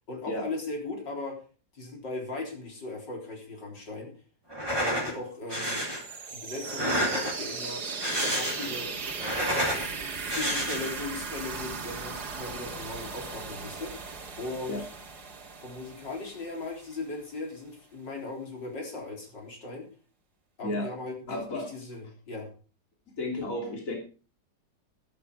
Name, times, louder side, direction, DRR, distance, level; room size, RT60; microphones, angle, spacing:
voice 1, 0.0-1.4 1.7-4.1 4.8-5.9 6.3-8.9 9.2-9.7 10.3-14.8 15.6-19.9 20.6-22.5, left 3 dB, 80° left, 1 dB, 4.5 m, -38 dB
sound 1, 4.5-5.1 5.5-6.0 6.6-7.5 7.9-8.8 9.1-9.9 10.3-11.0, equal, 15° right, 3.8 m, -29 dB
sound 2, 5.5-17.2, right 5 dB, 60° right, 2.3 m, -38 dB
voice 2, 21.3-21.7 23.2-24.0, left 1 dB, 45° left, 1 dB, 3.6 m, -32 dB
12.0 x 12.0 x 4.9 m, 0.37 s
omnidirectional pair, 1.9 m